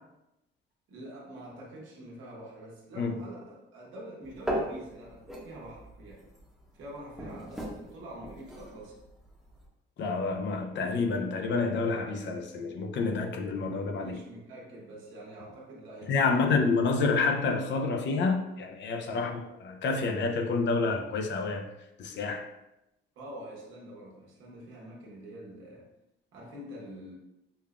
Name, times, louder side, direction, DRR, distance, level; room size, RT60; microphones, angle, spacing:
voice 1, 0.9-6.2 6.7-9.0 14.0-16.6 19.1-19.3 23.2-25.9 26.3-27.2, right 1 dB, 85° right, 1.2 m, -46 dB
sound 1, 4.2-9.7, equal, ahead, 0.8 m, -39 dB
voice 2, 10.0-14.2 16.1-21.7 22.0-22.5, left 4 dB, 65° left, 0.6 m, -28 dB
5.4 x 2.2 x 2.3 m
cardioid pair, 90°, 20 cm